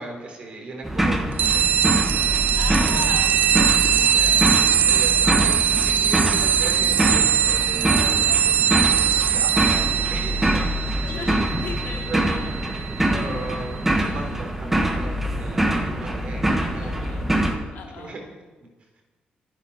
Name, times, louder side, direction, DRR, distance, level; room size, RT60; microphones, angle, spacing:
voice 1, 0.0-1.6 2.7-3.0 4.1-10.7 12.1-12.2 13.1-17.3 18.0-18.2, right 3 dB, 45° right, 2 dB, 3.5 m, -37 dB
sound 1, 0.8-17.6, right 1 dB, 10° right, 1.4 m, -24 dB
sound 2, 1.4-13.5, right 9 dB, 60° right, 0.4 m, -21 dB
voice 2, 2.5-3.8 11.0-13.4 16.8-17.4 17.7-18.2, left 6 dB, 80° left, 2 dB, 2.5 m, -38 dB
25.0 x 10.5 x 4.3 m, 1.3 s
cardioid pair, 160°, 3 cm